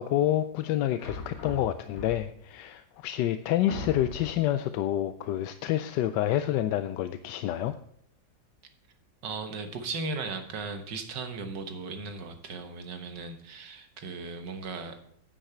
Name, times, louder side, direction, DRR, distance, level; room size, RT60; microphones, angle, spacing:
voice 1, 0.0-7.7, left 12 dB, 75° left, 11 dB, 1.1 m, -28 dB
sound 1, 1.0-2.5 3.1-3.2 3.7-4.5, left 2 dB, 50° left, 2.0 m, -39 dB
voice 2, 9.2-15.0, right 4 dB, 70° right, 7 dB, 1.8 m, -37 dB
9.7 x 9.1 x 4.4 m, 0.67 s
omnidirectional pair, 2.0 m